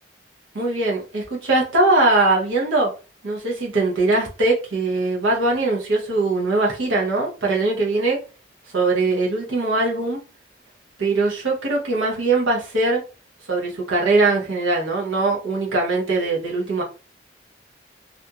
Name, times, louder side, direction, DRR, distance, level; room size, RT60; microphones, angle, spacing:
voice 1, 0.5-2.9 3.2-8.2 8.6-10.2 11.0-13.0 13.5-16.8, right 2 dB, 90° right, 0.8 m, -21 dB
2.5 x 2.3 x 2.7 m
head